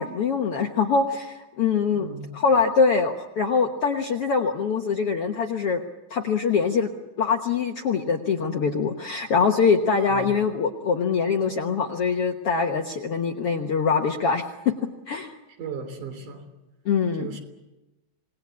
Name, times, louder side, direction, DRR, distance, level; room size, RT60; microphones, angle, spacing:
voice 1, 0.0-5.8 6.1-6.9 7.2-14.7 15.1-15.3 16.8-17.4, left 5 dB, 60° left, 3 dB, 1.6 m, -23 dB
voice 2, 1.9-2.3 10.1-10.3 15.6-16.4 17.2-17.4, right 5 dB, 65° right, 6 dB, 4.8 m, -36 dB
27.0 x 19.5 x 8.4 m, 1.0 s
omnidirectional pair, 4.0 m